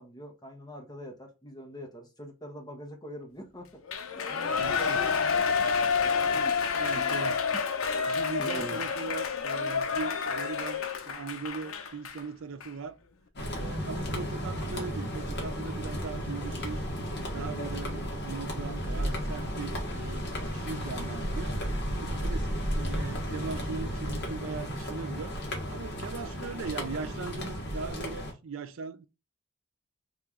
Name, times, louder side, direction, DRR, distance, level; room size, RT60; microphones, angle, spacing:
voice 1, 0.0-6.6 6.9-7.2 8.4-8.8 22.1-22.3, equal, 20° left, 1.1 m, -44 dB
Shout / Cheering, 3.9-12.2 12.6-12.7, left 5 dB, 80° left, 0.6 m, -29 dB
voice 2, 4.2-5.0 6.8-7.4 8.1-13.0 13.5-16.9 17.3-20.3 20.5-21.5 21.9-25.3 25.7-29.1, right 5 dB, 70° right, 0.5 m, -39 dB
sound 1, 13.4-28.3, equal, 55° left, 1.4 m, -33 dB
3.3 x 2.9 x 3.6 m
head